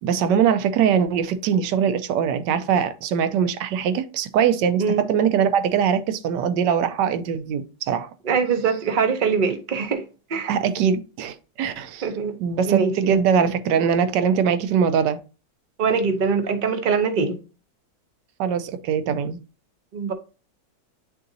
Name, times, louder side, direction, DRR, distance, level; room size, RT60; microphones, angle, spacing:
voice 1, 0.0-8.1 10.5-12.1 12.4-15.2 18.4-19.4, right 7 dB, 80° right, 1.2 m, -22 dB
voice 2, 8.2-10.0 10.3-10.5 12.0-12.4 12.7-13.2 15.8-17.4 19.9-20.1, right 5 dB, 60° right, 0.5 m, -22 dB
9.3 x 3.8 x 2.6 m
omnidirectional pair, 2.0 m